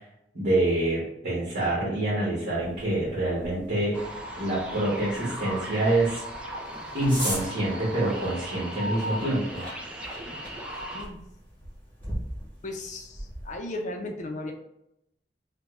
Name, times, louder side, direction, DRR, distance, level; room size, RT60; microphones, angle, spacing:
voice 1, 0.3-4.0 4.4-6.2 6.9-9.6, right 1 dB, 50° right, -7 dB, 1.2 m, -26 dB
sound 1, 2.6-13.6, equal, 10° left, 1.2 m, -40 dB
Radio tuner, 3.9-11.0, equal, 5° right, 0.5 m, -37 dB
voice 2, 12.6-14.5, left 2 dB, 45° left, 3 dB, 0.6 m, -35 dB
4.9 x 2.2 x 2.4 m, 0.79 s
head